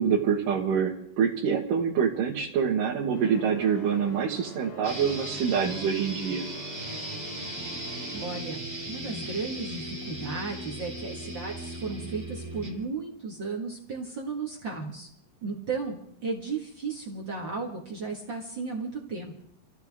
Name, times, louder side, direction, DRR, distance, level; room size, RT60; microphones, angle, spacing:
voice 1, 0.0-6.4, right 7 dB, 70° right, -3 dB, 2.9 m, -26 dB
sound 1, 3.1-8.4, right 2 dB, 75° left, 5.8 m, -45 dB
sound 2, 4.8-12.8, right 1 dB, 5° right, 1.8 m, -37 dB
voice 2, 8.1-15.1 15.4-19.3, right 4 dB, 40° right, -2 dB, 1.9 m, -35 dB
27.5 x 14.5 x 3.6 m, 0.71 s
omnidirectional pair, 4.1 m